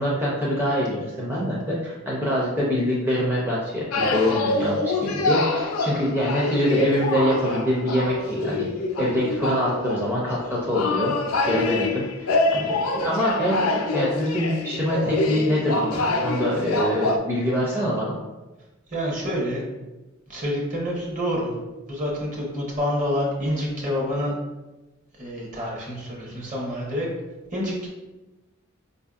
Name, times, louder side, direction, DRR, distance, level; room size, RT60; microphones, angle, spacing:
voice 1, 0.0-8.7 9.0-11.1 11.5-18.2, equal, 10° right, -6 dB, 0.5 m, -24 dB
sound 1, 3.9-17.2, left 2 dB, 80° left, 0.4 m, -26 dB
voice 2, 18.9-19.6 20.3-21.5 21.9-24.3 25.2-27.1 27.5-27.9, equal, 40° right, -3 dB, 1.0 m, -27 dB
4.7 x 2.6 x 2.4 m, 1.1 s
head